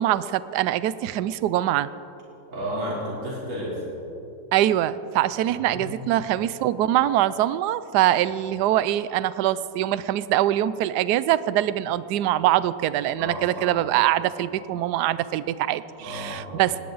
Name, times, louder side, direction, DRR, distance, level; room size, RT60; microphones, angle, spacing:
voice 1, 0.0-1.9 4.5-16.8, right 13 dB, 70° right, 16 dB, 1.0 m, -23 dB
voice 2, 2.5-3.8 5.4-6.3 13.2-13.7 16.0-16.6, equal, 40° right, -6 dB, 3.9 m, -33 dB
19.5 x 18.5 x 4.0 m, 2.9 s
omnidirectional pair, 2.0 m